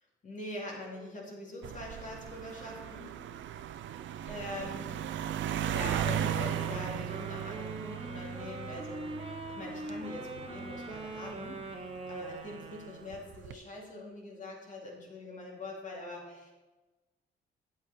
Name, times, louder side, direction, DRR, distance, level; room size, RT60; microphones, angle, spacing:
voice 1, 0.2-3.1 4.2-4.9 5.7-9.1 9.5-16.5, left 2 dB, 40° left, -2 dB, 2.8 m, -43 dB
sound 1, 1.6-12.3 13.1-13.5, right 9 dB, 70° right, 0.5 m, -37 dB
Wind instrument woodwind instrument, 6.2-13.2, right 2 dB, 30° right, 1.3 m, -42 dB
8.8 x 8.2 x 4.3 m, 1.2 s
cardioid pair, 90°, 20 cm